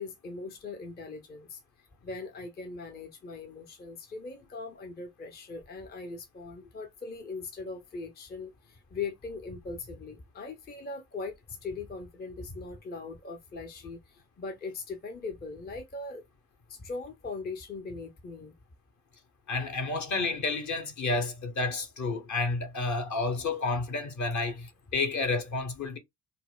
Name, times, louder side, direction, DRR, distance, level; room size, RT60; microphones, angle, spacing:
voice 1, 0.0-1.6 2.0-11.3 11.6-14.0 14.4-16.2 16.7-18.5, left 4 dB, 20° left, 0.6 m, -40 dB
voice 2, 19.5-26.0, left 3 dB, 40° left, 0.9 m, -30 dB
4.0 x 2.0 x 2.3 m
hypercardioid pair, 45°, 44 cm